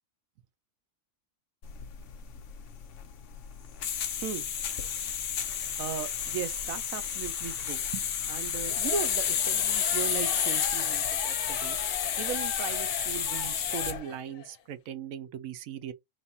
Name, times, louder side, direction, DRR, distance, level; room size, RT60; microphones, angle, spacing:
sound 1, 1.6-14.0, left 8 dB, 60° left, 1.0 m, -31 dB
voice 1, 5.8-11.8 12.2-15.9, right 8 dB, 65° right, 1.0 m, -37 dB
sound 2, 8.6-14.6, left 8 dB, 75° left, 1.3 m, -39 dB
5.3 x 3.2 x 2.7 m
omnidirectional pair, 1.6 m